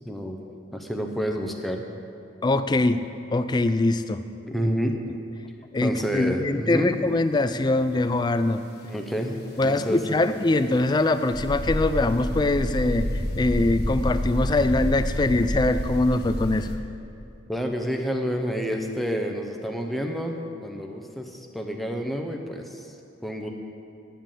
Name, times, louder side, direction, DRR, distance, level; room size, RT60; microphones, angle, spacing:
voice 1, 0.0-0.4 0.7-1.8 4.5-5.0 5.8-6.9 8.9-10.2 17.5-23.0 23.2-23.5, equal, ahead, 2 dB, 0.7 m, -29 dB
voice 2, 2.4-3.1 3.3-4.2 5.7-8.6 9.6-13.1 13.4-16.7, left 2 dB, 20° left, 11 dB, 0.3 m, -23 dB
sound 1, 11.3-16.8, equal, 55° left, 1.2 m, -28 dB
10.0 x 7.4 x 7.4 m, 2.7 s
head